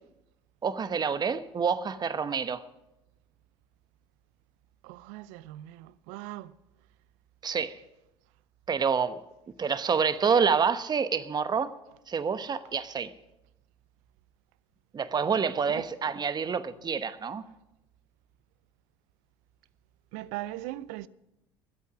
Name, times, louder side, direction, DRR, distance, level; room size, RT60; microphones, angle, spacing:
voice 1, 0.6-2.6 7.4-7.8 8.7-9.2 9.6-11.7 12.1-13.1 14.9-17.4, right 6 dB, 30° right, 1.0 m, -27 dB
voice 2, 4.8-6.5 15.7-15.9 20.1-21.1, right 16 dB, 65° right, 0.6 m, -39 dB
22.0 x 8.3 x 6.1 m
hypercardioid pair, 65°, 14 cm